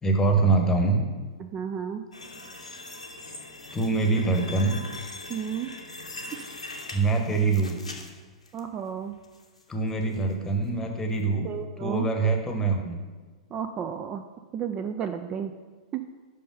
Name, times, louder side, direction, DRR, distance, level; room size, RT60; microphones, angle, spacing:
voice 1, 0.0-1.0 3.7-4.8 6.9-7.8 9.7-11.5 11.8-13.0, right 3 dB, 15° left, 4 dB, 1.0 m, -24 dB
voice 2, 1.4-2.0 5.3-5.7 8.5-9.2 11.4-12.1 13.5-14.2 14.5-15.5 15.9-16.0, right 8 dB, 25° right, 8 dB, 0.3 m, -32 dB
sound 1, 2.1-8.6 9.0-9.6 10.0-10.2 10.7-10.8, left 2 dB, 85° left, 0.8 m, -41 dB
5.5 x 5.2 x 5.4 m, 1.4 s
figure-of-eight pair, 100°, 3 cm